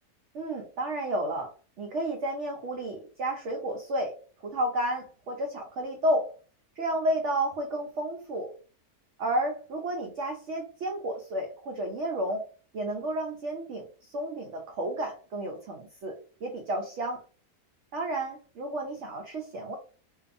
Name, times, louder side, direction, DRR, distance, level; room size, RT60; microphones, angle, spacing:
voice 1, 0.3-4.2 4.4-6.3 6.8-8.5 9.2-12.5 12.7-17.2 17.9-19.8, right 1 dB, 80° right, 2 dB, 0.6 m, -31 dB
2.6 x 2.3 x 2.5 m, 0.38 s
omnidirectional pair, 1.8 m